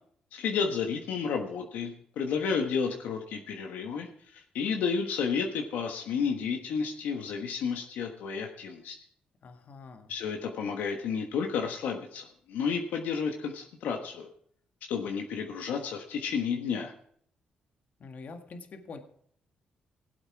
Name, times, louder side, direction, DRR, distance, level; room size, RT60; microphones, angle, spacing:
voice 1, 0.3-9.0 10.1-14.3 14.9-16.9, left 6 dB, 85° left, 3 dB, 1.3 m, -31 dB
voice 2, 9.4-10.1 18.0-19.0, left 4 dB, 60° left, 6 dB, 1.7 m, -45 dB
17.0 x 8.0 x 4.7 m, 0.63 s
cardioid pair, 70°, 3 cm